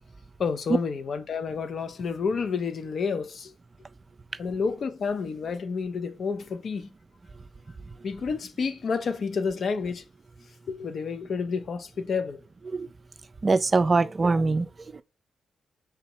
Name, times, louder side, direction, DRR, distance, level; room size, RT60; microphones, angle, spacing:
voice 1, 0.4-3.5 4.4-6.9 8.0-10.0 10.7-12.4, left 5 dB, 60° left, 0.6 m, -30 dB
voice 2, 13.4-15.0, right 3 dB, 40° right, 0.3 m, -23 dB
3.4 x 2.8 x 4.6 m
hypercardioid pair, 40°, 0 cm